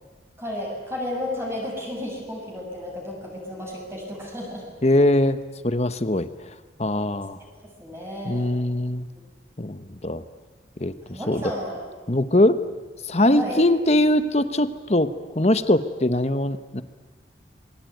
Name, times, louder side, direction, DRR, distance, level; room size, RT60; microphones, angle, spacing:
voice 1, 0.4-4.6 7.8-8.5 11.0-11.8 13.3-13.6, left 1 dB, 15° right, -2 dB, 6.9 m, -32 dB
voice 2, 4.8-5.4 5.6-6.3 6.8-7.4 8.2-9.1 9.6-10.2 10.8-10.9 11.3-11.4 12.1-12.6 13.0-15.1 15.3-16.8, left 1 dB, 35° left, 11 dB, 1.2 m, -21 dB
27.5 x 22.0 x 9.4 m, 1.3 s
head